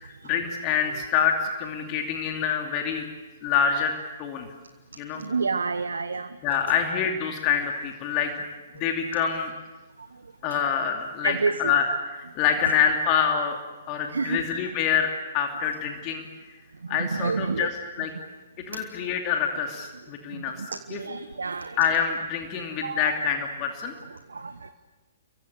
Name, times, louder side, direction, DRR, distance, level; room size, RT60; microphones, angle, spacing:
voice 1, 0.0-3.0 3.4-3.9 4.2-4.5 5.0-5.2 6.4-8.4 8.7-9.5 10.4-13.6 13.9-16.2 16.9-18.1 18.7-20.5 20.9-21.0 21.8-23.9, left 7 dB, 30° left, 3 dB, 2.7 m, -26 dB
voice 2, 5.1-6.4 11.2-11.7 14.1-14.4 16.8-17.7 20.2-21.8 22.5-23.1 24.3-24.7, right 4 dB, 70° right, 11 dB, 1.1 m, -29 dB
29.0 x 23.5 x 6.8 m, 1.2 s
figure-of-eight pair, 120°, 0 cm